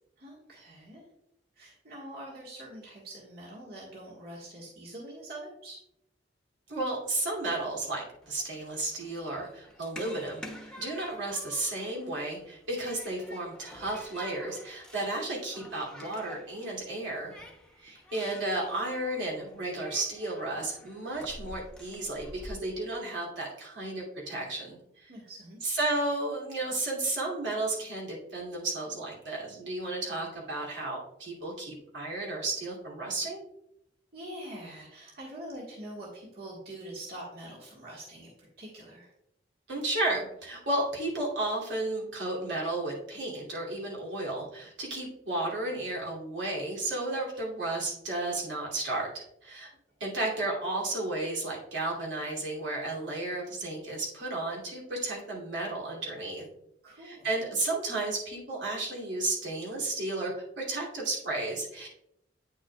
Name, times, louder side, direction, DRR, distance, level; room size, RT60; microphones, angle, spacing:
voice 1, 0.2-1.0 1.6-5.8 17.9-18.4 25.1-25.7 34.1-38.3 38.6-39.1 56.8-57.3, right 1 dB, 60° right, -4 dB, 1.6 m, -44 dB
voice 2, 6.7-17.3 17.8-25.1 25.6-33.4 39.7-49.7 50.0-56.4 57.0-61.9, right 2 dB, 90° right, -4 dB, 2.8 m, -33 dB
Human group actions, 8.2-22.5, equal, 5° left, 0.9 m, -49 dB
9.2 x 6.2 x 2.4 m, 0.79 s
head